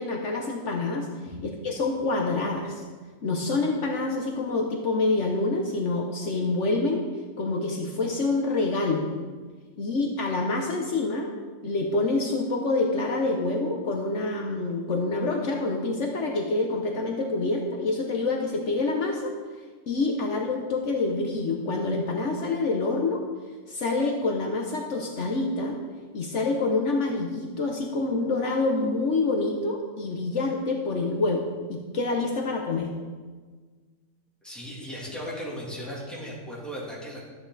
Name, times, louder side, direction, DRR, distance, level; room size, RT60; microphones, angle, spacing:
voice 1, 0.0-1.1 1.6-2.8 3.2-7.0 7.4-9.1 9.8-11.3 11.6-19.3 19.9-23.2 23.7-25.8 26.1-32.9, left 3 dB, 65° left, 1 dB, 1.3 m, -27 dB
voice 2, 34.4-37.2, equal, ahead, -6 dB, 2.9 m, -36 dB
13.0 x 8.5 x 4.1 m, 1.5 s
omnidirectional pair, 1.3 m